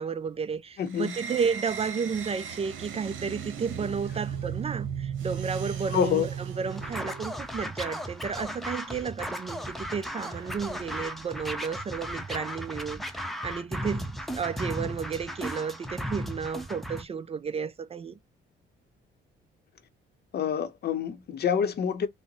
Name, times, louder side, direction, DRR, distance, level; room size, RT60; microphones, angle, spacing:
voice 1, 0.0-6.3 6.6-18.2, right 6 dB, 30° right, 0.4 m, -32 dB
voice 2, 0.8-1.2 5.9-6.3 20.3-22.1, left 8 dB, 55° left, 0.7 m, -27 dB
sound 1, 0.9-7.5, right 8 dB, 75° right, 0.9 m, -36 dB
Scratching (performance technique), 6.7-17.0, equal, ahead, 0.7 m, -36 dB
sound 2, 10.2-13.1 13.4-13.5, right 4 dB, 55° right, 1.7 m, -53 dB
3.9 x 2.0 x 2.8 m
cardioid pair, 90°, 20 cm